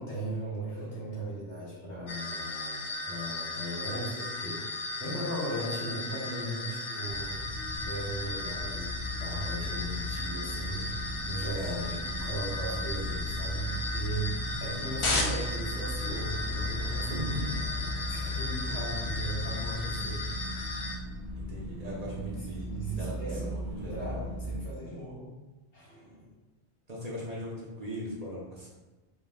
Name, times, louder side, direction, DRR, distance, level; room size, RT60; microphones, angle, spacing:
voice 1, 0.0-7.4 7.7-10.8 11.3-17.3 18.1-20.3 22.1-22.2 22.6-25.2 25.7-26.3, right 1 dB, 85° left, -8 dB, 1.9 m, -38 dB
sound 1, 2.1-21.0, left 2 dB, 45° left, 0.4 m, -36 dB
sound 2, 7.1-24.6, left 1 dB, 65° left, 1.3 m, -36 dB
voice 2, 11.6-12.0 17.1-17.6 21.4-24.1 26.9-28.7, equal, 40° right, -5 dB, 0.9 m, -39 dB
5.2 x 3.3 x 2.3 m, 1.1 s
omnidirectional pair, 1.2 m